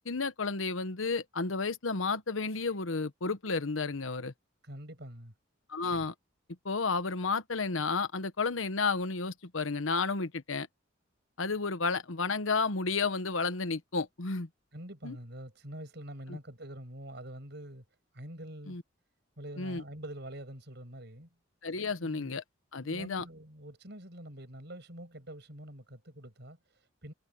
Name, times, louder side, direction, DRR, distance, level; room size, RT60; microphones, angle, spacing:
voice 1, 0.0-4.3 5.7-6.1 6.6-10.7 11.4-14.5 15.0-15.1 18.7-18.8 19.6-19.8 21.6-22.4 22.7-23.2, left 4 dB, 85° left, 1.1 m, -32 dB
voice 2, 4.6-5.3 14.7-17.8 18.1-18.8 19.4-21.3 22.0-22.3 22.8-27.1, right 1 dB, 60° right, 6.9 m, -45 dB
head